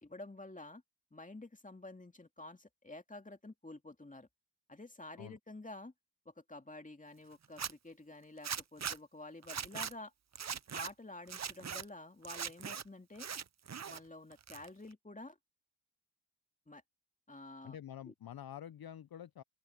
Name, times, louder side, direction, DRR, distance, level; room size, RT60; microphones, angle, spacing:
voice 1, 0.0-0.8 1.1-4.3 4.7-5.9 6.3-10.1 10.7-13.3 13.9-15.4 16.7-16.8 17.3-17.8 18.1-18.2, left 2 dB, 20° left, 2.4 m, -50 dB
Zipper (clothing), 7.4-7.7 8.4-9.0 9.4-9.9 10.3-10.9 11.3-11.8 12.2-12.8 13.2-14.0 14.3-14.9, right 7 dB, 40° right, 0.7 m, -40 dB
voice 2, 17.6-19.4, left 10 dB, 55° left, 0.7 m, -48 dB
open air
cardioid pair, 50°, 43 cm